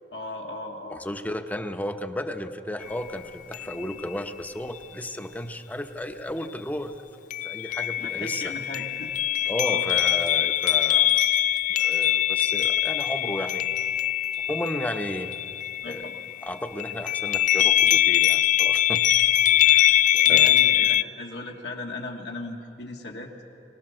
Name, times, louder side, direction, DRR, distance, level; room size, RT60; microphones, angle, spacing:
voice 1, 0.1-1.0 8.0-9.1 9.7-9.9 15.8-16.1 20.0-23.4, left 2 dB, 90° left, -1 dB, 1.7 m, -37 dB
voice 2, 0.9-6.9 7.4-8.5 9.5-11.2 11.7-13.7 14.5-15.3 15.9-16.1 16.4-19.1 19.6-20.5, left 1 dB, 10° left, 8 dB, 0.8 m, -33 dB
sound 1, 2.8-2.9 3.5-4.1 7.3-16.4 16.8-21.0, left 12 dB, 45° left, 0.4 m, -22 dB
24.5 x 19.0 x 6.3 m, 2.8 s
head